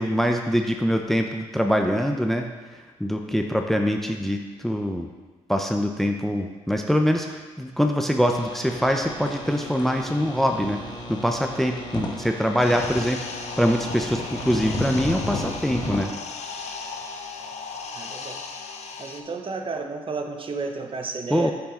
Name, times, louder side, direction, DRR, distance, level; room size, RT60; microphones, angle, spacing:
voice 1, 0.0-5.1 5.5-10.8 11.1-13.2 13.6-16.1 21.3-21.5, equal, ahead, 4 dB, 0.7 m, -24 dB
sound 1, 8.3-16.1, left 1 dB, 30° left, 1.5 m, -34 dB
sound 2, 12.6-19.2, left 4 dB, 55° left, 0.8 m, -36 dB
voice 2, 17.9-18.4 19.0-21.5, right 4 dB, 40° right, 4 dB, 1.0 m, -32 dB
8.3 x 5.9 x 3.8 m, 1.3 s
hypercardioid pair, 50°, 14 cm